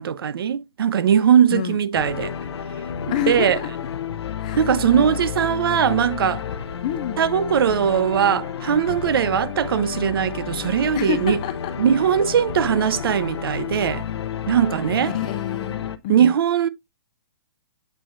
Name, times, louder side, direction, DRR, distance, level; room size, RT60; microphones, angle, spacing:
voice 1, 0.0-2.3 3.3-3.6 4.5-6.4 7.2-11.4 11.8-14.0 14.5-15.1 16.1-16.7, right 8 dB, 60° right, 0.8 m, -20 dB
sound 1, 1.9-16.0, left 8 dB, 80° left, 0.7 m, -31 dB
voice 2, 3.1-3.9 4.4-5.2 6.8-7.2 10.9-11.7 15.0-16.3, left 11 dB, 15° left, 0.3 m, -28 dB
7.8 x 6.0 x 2.6 m
hypercardioid pair, 170°, 14 cm